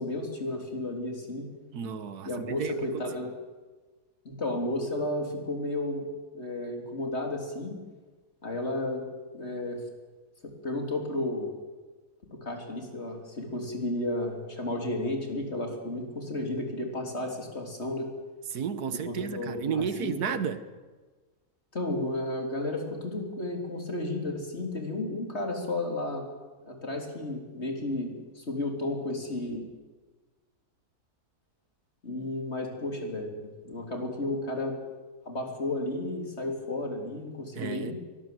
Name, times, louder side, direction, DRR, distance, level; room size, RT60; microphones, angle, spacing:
voice 1, 0.0-1.5 2.3-3.3 4.2-6.0 6.3-7.8 8.4-9.0 9.3-9.8 10.4-11.5 12.3-18.1 19.1-20.4 21.7-26.3 26.6-29.7 32.0-34.8 35.3-37.9, left 1 dB, 45° left, 4.0 m, -33 dB
voice 2, 1.7-3.1 18.5-20.6 37.5-37.9, right 7 dB, 85° right, 1.7 m, -32 dB
23.5 x 19.0 x 7.8 m
omnidirectional pair, 1.6 m